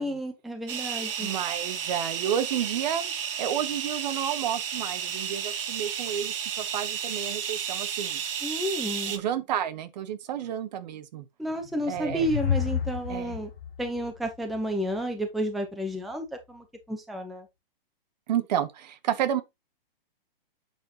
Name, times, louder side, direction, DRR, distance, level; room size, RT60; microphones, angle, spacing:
voice 1, 0.0-1.3 8.4-9.1 11.4-13.5 13.8-17.5, equal, ahead, 0.8 m, -31 dB
sound 1, 0.7-9.2, right 8 dB, 70° right, 1.6 m, -32 dB
voice 2, 1.2-3.1 3.4-8.2 9.1-11.3 11.9-12.3 13.1-13.3 18.3-19.4, right 10 dB, 45° right, 1.1 m, -31 dB
sound 2, 11.5-15.0, left 8 dB, 85° left, 0.9 m, -32 dB
8.3 x 5.7 x 2.8 m
hypercardioid pair, 155°, 29 cm